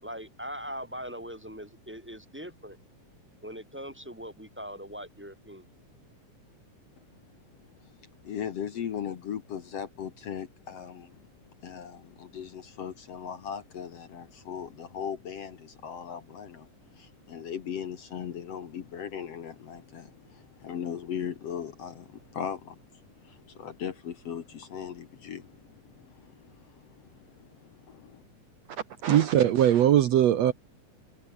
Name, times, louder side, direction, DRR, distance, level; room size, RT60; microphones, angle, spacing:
voice 1, 0.0-2.8 3.4-5.6, equal, 5° right, 3.7 m, -41 dB
voice 2, 8.2-11.2 11.6-16.7 16.9-22.8 23.2-28.2, left 8 dB, 55° left, 2.3 m, -38 dB
voice 3, 29.0-30.5, right 11 dB, 65° right, 2.1 m, -20 dB
omnidirectional pair, 3.6 m